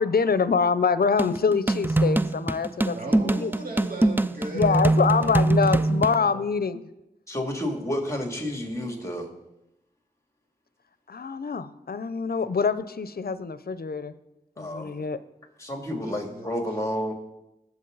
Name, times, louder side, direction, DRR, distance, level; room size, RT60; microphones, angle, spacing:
voice 1, 0.0-3.0 3.2-3.5 4.5-6.9 11.1-14.1 14.6-15.2, left 5 dB, 70° left, 14 dB, 0.7 m, -25 dB
sound 1, 1.2-6.2, right 2 dB, 10° right, 0.4 m, -23 dB
voice 2, 2.9-6.4 8.5-9.0 16.0-16.5, right 1 dB, 65° right, -2 dB, 3.4 m, -38 dB
voice 3, 7.3-9.3 14.6-15.1 15.6-17.1, equal, 20° left, 2 dB, 2.7 m, -30 dB
18.5 x 7.3 x 4.0 m, 0.90 s
wide cardioid pair, 50°, 17 cm